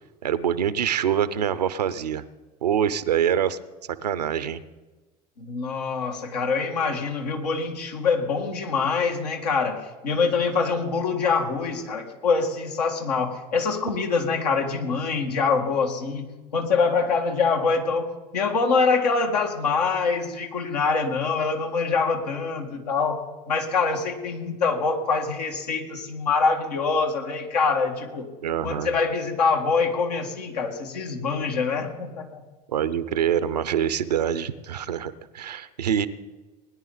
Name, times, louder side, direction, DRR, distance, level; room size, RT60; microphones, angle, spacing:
voice 1, 0.2-2.2 2.6-3.6 4.0-4.6 28.4-28.9 32.7-36.1, right 9 dB, 85° right, 15 dB, 0.7 m, -25 dB
voice 2, 5.4-16.3 16.5-28.3 28.6-32.4, left 4 dB, 80° left, 3 dB, 1.9 m, -25 dB
20.5 x 10.5 x 4.0 m, 1.2 s
figure-of-eight pair, 70°, 20 cm